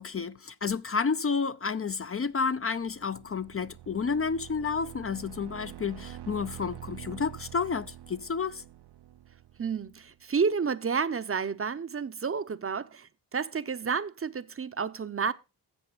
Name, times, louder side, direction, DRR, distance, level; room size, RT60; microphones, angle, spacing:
voice 1, 0.0-8.6, left 5 dB, 35° left, 0.6 m, -30 dB
sound 1, 2.4-10.1, right 13 dB, 75° right, 0.8 m, -46 dB
voice 2, 9.6-15.3, right 5 dB, 35° right, 0.7 m, -30 dB
12.5 x 7.6 x 4.0 m
cardioid pair, 70°, 40 cm